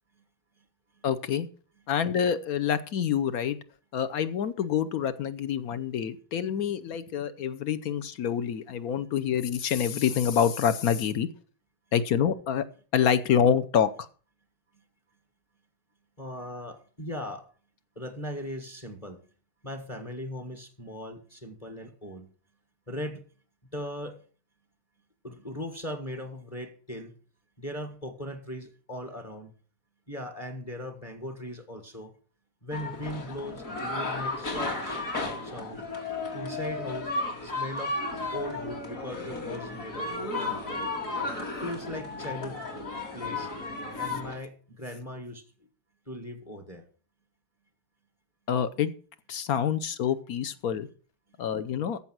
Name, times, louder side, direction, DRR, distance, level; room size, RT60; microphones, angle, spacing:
voice 1, 1.0-1.5 1.9-3.6 3.9-11.3 11.9-12.6 12.9-14.1 48.5-48.9 49.3-50.9 51.4-52.0, left 8 dB, 60° left, 13 dB, 1.1 m, -26 dB
voice 2, 16.2-17.4 17.9-19.2 19.6-22.3 22.9-23.2 23.7-24.2 25.2-27.1 27.6-29.5 30.1-32.1 32.6-34.9 35.4-35.8 36.3-37.1 37.4-38.0 38.3-40.1 40.3-40.8 41.6-42.6 43.1-43.5 44.0-45.4 46.1-46.8, equal, 20° left, 6 dB, 1.4 m, -38 dB
sound 1, 32.7-44.3, left 3 dB, 45° left, 2.5 m, -34 dB
14.5 x 5.7 x 6.0 m, 0.40 s
omnidirectional pair, 2.1 m